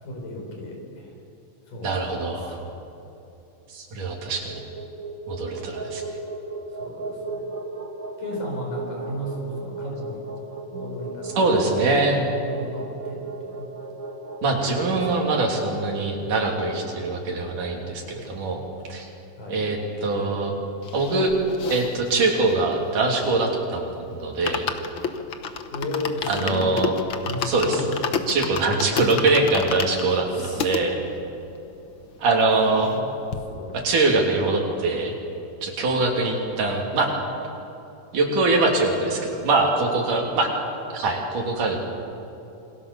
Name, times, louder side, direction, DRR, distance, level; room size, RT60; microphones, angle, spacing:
voice 1, 0.0-1.1 1.7-2.6 5.5-5.8 6.8-7.4 8.2-10.2 10.7-13.7 14.9-15.0 19.4-19.6 25.7-26.8 27.2-27.9 30.2-30.8 32.7-33.0 33.5-33.8, left 1 dB, 80° left, 1 dB, 6.6 m, -34 dB
voice 2, 1.8-2.6 3.7-4.5 5.3-6.0 11.4-12.2 14.4-18.6 18.9-19.1 19.5-20.5 20.9-21.3 21.7-24.7 26.3-26.9 27.4-27.8 28.3-31.0 32.2-32.9 33.7-35.1 35.6-37.1 38.1-40.5 40.9-41.8, right 3 dB, 70° right, 0 dB, 4.7 m, -23 dB
sound 1, 4.2-18.4, right 3 dB, 30° right, 2.2 m, -36 dB
sound 2, 20.8-23.6 23.9-24.0 24.3-30.8 31.4-31.5 31.7-31.8 32.1-33.0 33.3-33.4, left 6 dB, 60° left, 1.3 m, -31 dB
27.5 x 22.5 x 7.1 m, 3.0 s
omnidirectional pair, 3.8 m